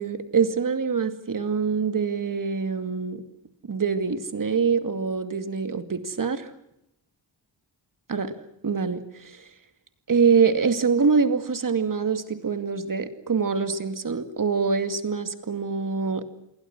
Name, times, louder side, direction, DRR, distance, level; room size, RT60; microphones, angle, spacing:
voice 1, 0.0-3.2 3.7-6.5 8.1-8.3 8.6-9.4 10.1-16.3, right 5 dB, 45° right, 9 dB, 2.4 m, -25 dB
27.5 x 22.5 x 6.1 m, 0.83 s
wide cardioid pair, 135°, 44 cm